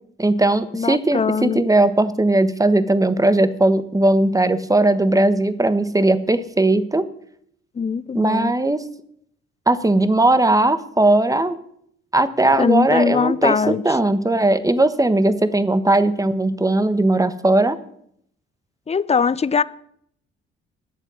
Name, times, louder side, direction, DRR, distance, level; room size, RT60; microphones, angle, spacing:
voice 1, 0.2-7.0 8.1-8.8 9.7-11.6 12.1-17.8, right 2 dB, 10° right, 1.3 m, -18 dB
voice 2, 0.7-1.6 7.8-8.5 12.6-13.8 18.9-19.6, left 6 dB, 20° left, 0.6 m, -21 dB
20.0 x 7.2 x 5.6 m
hypercardioid pair, 50°, 29 cm